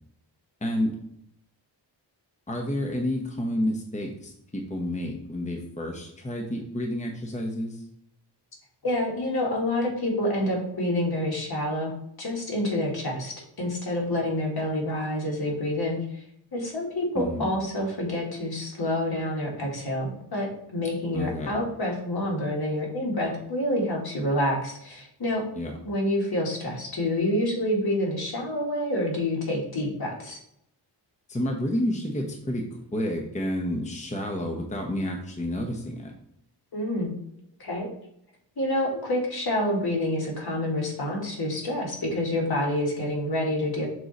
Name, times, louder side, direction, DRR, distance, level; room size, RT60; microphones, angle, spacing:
voice 1, 0.6-1.0 2.5-7.8 17.1-17.5 21.1-21.5 25.5-25.7 31.3-32.6 32.9-36.1, left 1 dB, 15° left, 1 dB, 0.9 m, -30 dB
voice 2, 8.8-11.9 12.2-16.2 16.5-25.5 25.8-30.4 36.7-37.1 37.6-37.9 38.6-43.9, left 1 dB, 55° left, -2 dB, 2.0 m, -28 dB
6.3 x 3.9 x 4.1 m, 0.73 s
wide cardioid pair, 110°, 44 cm